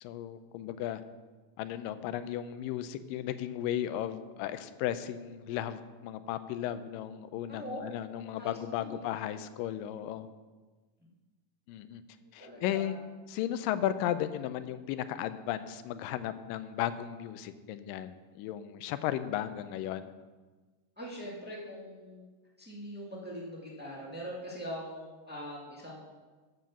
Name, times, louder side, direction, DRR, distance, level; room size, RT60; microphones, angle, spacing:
voice 1, 0.0-1.0 1.6-10.3 11.7-12.0 12.3-13.0 13.3-20.1, left 11 dB, 90° left, 12 dB, 2.3 m, -35 dB
voice 2, 7.5-7.9 8.4-9.0 12.2-12.9 21.0-22.2 22.6-26.1, equal, 10° right, -4 dB, 0.6 m, -42 dB
9.4 x 7.4 x 6.1 m, 1.3 s
omnidirectional pair, 3.8 m